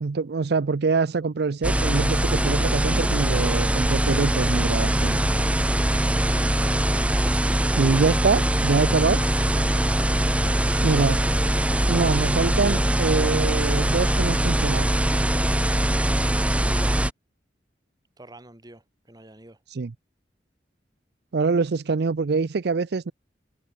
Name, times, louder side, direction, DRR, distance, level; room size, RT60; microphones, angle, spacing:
voice 1, 0.0-5.2 7.8-9.2 10.8-11.2 11.9-14.9 19.7-19.9 21.3-23.1, right 4 dB, 65° right, 0.5 m, -24 dB
sound 1, 1.6-17.1, right 1 dB, 5° right, 0.8 m, -22 dB
voice 2, 6.3-6.9 10.3-11.3 15.7-16.1 18.2-19.6, right 1 dB, 20° right, 2.9 m, -46 dB
head